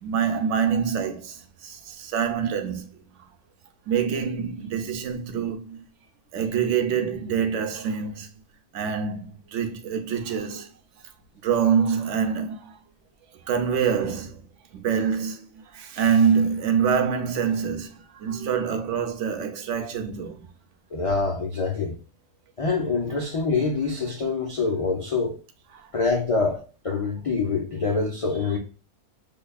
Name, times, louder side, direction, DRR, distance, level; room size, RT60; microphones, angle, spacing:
voice 1, 0.0-1.4 1.6-2.9 3.9-5.8 6.3-8.3 8.7-10.7 11.4-12.7 13.5-14.4 14.7-15.5 15.7-20.4 25.7-25.9, right 7 dB, 60° right, 0.9 m, -25 dB
voice 2, 20.9-22.0 22.6-25.4 25.9-28.6, left 4 dB, 50° left, 0.4 m, -25 dB
5.5 x 2.2 x 2.3 m
omnidirectional pair, 1.5 m